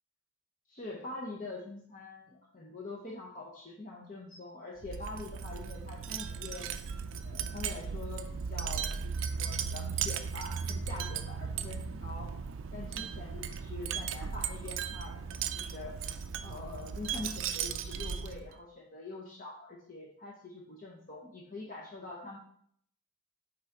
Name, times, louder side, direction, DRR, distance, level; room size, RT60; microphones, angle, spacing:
voice 1, 0.7-6.7 7.2-9.1 9.4-12.3 12.7-16.0 16.4-22.4, left 2 dB, 35° left, -3 dB, 0.8 m, -44 dB
Wind chime, 4.8-18.5, right 6 dB, 60° right, 0.4 m, -37 dB
6.2 x 3.8 x 4.5 m, 0.65 s
head